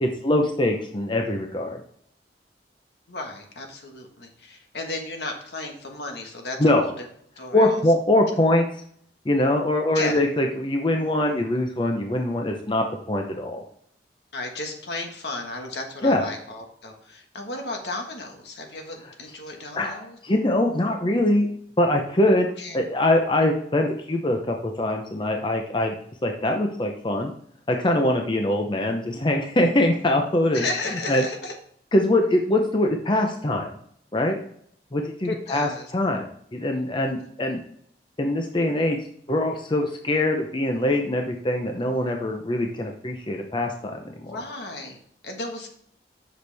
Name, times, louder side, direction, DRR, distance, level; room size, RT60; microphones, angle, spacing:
voice 1, 0.0-1.8 6.6-6.9 7.5-8.7 9.3-13.6 16.0-16.2 19.8-21.5 21.8-22.5 22.7-25.9 26.2-27.3 27.7-30.7 31.1-31.2 31.9-33.7 34.1-34.4 34.9-37.6 38.2-39.0 39.3-44.4, left 1 dB, 30° left, 3 dB, 0.7 m, -23 dB
voice 2, 3.1-6.9 7.4-7.8 9.9-10.2 14.3-20.2 22.6-22.8 30.5-31.5 35.2-35.9 44.2-45.7, left 2 dB, 70° left, 3 dB, 1.5 m, -34 dB
8.0 x 6.3 x 3.4 m, 0.64 s
head